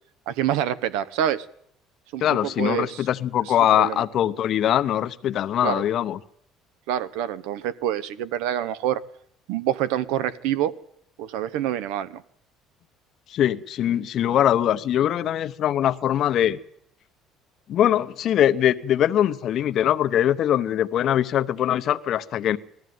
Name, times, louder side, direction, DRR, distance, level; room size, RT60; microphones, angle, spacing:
voice 1, 0.3-1.4 2.1-3.0 3.5-4.0 5.6-5.8 6.9-9.0 9.5-10.7 11.2-12.2, right 11 dB, 85° right, 16 dB, 1.0 m, -26 dB
voice 2, 2.2-6.2 13.3-16.6 17.7-22.6, left 11 dB, 40° left, 12 dB, 0.8 m, -22 dB
20.5 x 14.5 x 9.3 m, 0.69 s
cardioid pair, 175°, 0 cm